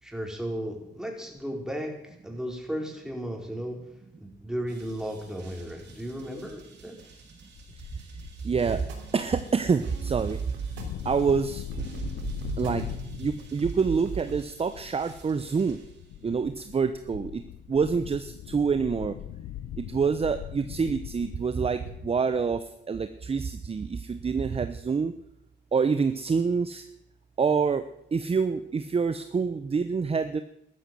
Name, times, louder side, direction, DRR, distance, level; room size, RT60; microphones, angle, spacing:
voice 1, 0.0-3.8 4.2-7.0, equal, 5° right, 1 dB, 4.6 m, -35 dB
sound 1, 4.7-16.6, right 4 dB, 60° right, 6.1 m, -54 dB
sound 2, 7.5-22.2, left 12 dB, 75° left, 0.8 m, -41 dB
voice 2, 8.4-8.8 9.1-10.4 11.0-11.6 12.6-12.9 13.2-15.8 16.2-17.4 17.7-19.1 19.8-22.6 22.9-25.1 25.7-26.8 27.4-27.8 28.1-30.4, right 5 dB, 30° right, 10 dB, 0.9 m, -26 dB
sound 3, 8.7-14.4, right 6 dB, 85° right, 3.3 m, -38 dB
13.5 x 13.0 x 7.8 m, 0.76 s
cardioid pair, 90°, 20 cm